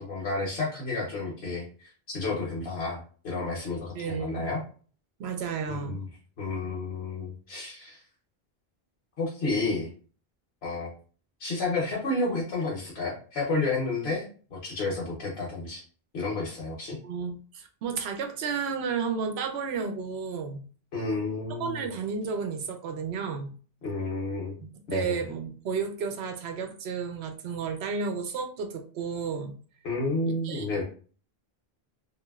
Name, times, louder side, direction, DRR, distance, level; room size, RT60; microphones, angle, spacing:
voice 1, 0.0-4.6 5.7-6.1 6.4-8.0 9.2-9.9 10.6-10.9 11.4-14.2 14.5-15.8 16.1-17.0 20.9-21.9 23.8-24.6 24.9-25.2 29.8-30.8, left 3 dB, 80° left, -5 dB, 1.1 m, -31 dB
voice 2, 3.9-4.5 5.2-6.0 17.0-20.6 21.6-23.5 24.6-29.5 30.3-30.7, right 5 dB, 90° right, 5 dB, 0.9 m, -32 dB
3.0 x 2.7 x 2.3 m, 0.41 s
omnidirectional pair, 1.0 m